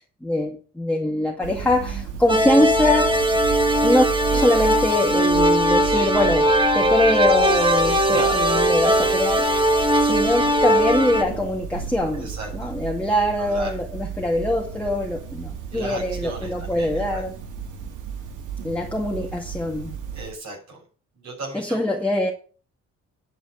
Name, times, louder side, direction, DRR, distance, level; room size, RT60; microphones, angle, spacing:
voice 1, 0.2-3.2 3.8-4.1 4.3-6.5 6.7-17.4 18.6-20.0 21.5-22.3, left 1 dB, 5° left, 2.2 m, -23 dB
sound 1, 1.4-20.3, right 7 dB, 80° right, 2.3 m, -34 dB
sound 2, 2.3-11.2, right 1 dB, 15° right, 1.9 m, -19 dB
voice 2, 8.1-8.5 12.1-12.7 13.4-13.7 15.7-17.2 20.1-20.8 21.1-21.8, right 2 dB, 65° right, 6.7 m, -35 dB
10.5 x 5.0 x 7.9 m
cardioid pair, 90°, 30 cm